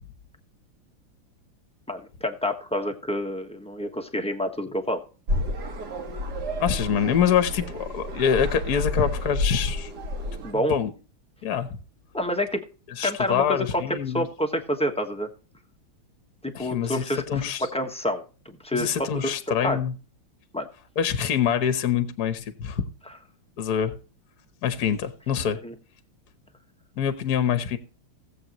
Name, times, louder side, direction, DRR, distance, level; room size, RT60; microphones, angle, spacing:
voice 1, 1.9-5.0 10.4-10.7 12.1-12.6 13.0-13.8 14.1-15.3 16.4-17.4 17.7-19.1 19.6-19.8 20.5-20.7 25.6-25.7, equal, 5° left, 4 dB, 0.8 m, -28 dB
sound 1, 5.3-10.5, left 1 dB, 50° right, 2.0 m, -30 dB
voice 2, 6.6-9.9 10.5-10.9 11.4-11.7 13.0-14.2 16.5-17.6 18.7-19.9 21.0-22.9 23.6-23.9 24.6-25.6 27.0-27.8, left 8 dB, 55° left, 10 dB, 1.4 m, -25 dB
17.5 x 7.9 x 3.0 m, 0.36 s
omnidirectional pair, 2.3 m